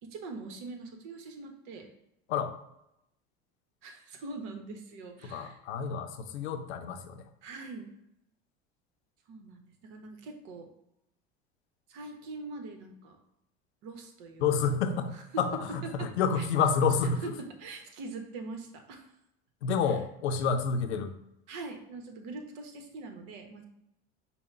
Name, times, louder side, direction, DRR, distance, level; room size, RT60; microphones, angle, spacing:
voice 1, 0.0-1.9 3.8-5.6 7.4-7.9 9.3-10.7 11.9-13.2 13.8-14.5 15.1-15.4 16.0-16.1 16.4-16.5 17.2-19.1 19.9-20.0 21.5-23.7, right 3 dB, 65° right, 5 dB, 1.0 m, -43 dB
voice 2, 5.2-7.2 14.4-17.2 19.6-21.1, left 6 dB, 90° left, 7 dB, 0.6 m, -29 dB
5.5 x 2.2 x 4.4 m, 0.82 s
hypercardioid pair, 80°, 33 cm